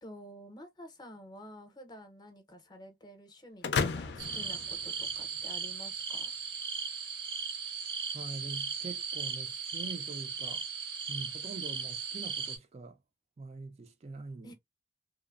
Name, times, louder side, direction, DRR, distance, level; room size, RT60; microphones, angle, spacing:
voice 1, 0.0-6.3 14.4-14.5, equal, 25° left, 0.6 m, -50 dB
sound 1, 3.6-5.6, left 5 dB, 65° left, 0.4 m, -34 dB
sound 2, 4.2-12.6, right 6 dB, 75° right, 1.0 m, -37 dB
voice 2, 8.1-10.7 11.1-13.0 13.4-14.5, right 3 dB, 35° right, 0.3 m, -44 dB
3.0 x 2.0 x 2.3 m
head